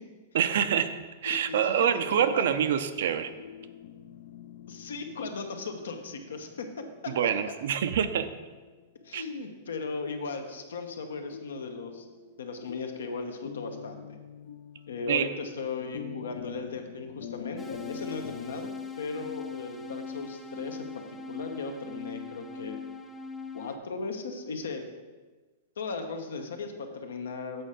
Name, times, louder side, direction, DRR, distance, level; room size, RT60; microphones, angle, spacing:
voice 1, 0.3-0.9 1.2-3.3 7.1-8.3 9.1-9.2 15.1-15.3, right 8 dB, 70° right, 11 dB, 0.5 m, -26 dB
voice 2, 1.2-1.9 2.1-2.6 4.7-7.3 9.0-12.1 12.4-14.2 14.9-18.7 19.0-22.8 23.5-24.8 25.8-27.7, left 4 dB, 90° left, 5 dB, 0.9 m, -37 dB
sound 1, 3.3-18.5, left 9 dB, 65° left, 0.4 m, -47 dB
sound 2, 17.6-23.8, left 4 dB, 10° left, 0.5 m, -41 dB
7.9 x 4.4 x 5.0 m, 1.3 s
hypercardioid pair, 135°, 0 cm